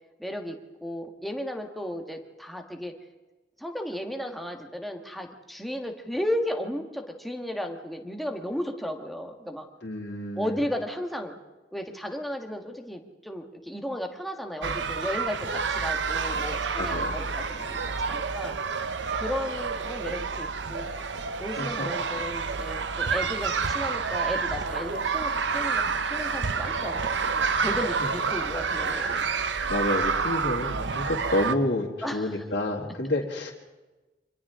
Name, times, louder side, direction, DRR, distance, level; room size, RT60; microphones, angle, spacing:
voice 1, 0.2-2.9 3.6-9.7 10.4-11.4 11.7-18.5 19.1-20.9 21.4-29.3 32.0-32.4, equal, ahead, 3 dB, 1.5 m, -34 dB
voice 2, 9.8-10.5 16.8-17.2 21.6-21.9 27.6-28.1 28.8-29.2 29.7-33.5, left 1 dB, 65° left, -4 dB, 2.3 m, -30 dB
sound 1, 14.6-31.6, right 5 dB, 80° right, 0.9 m, -29 dB
28.5 x 25.0 x 3.7 m, 1.2 s
head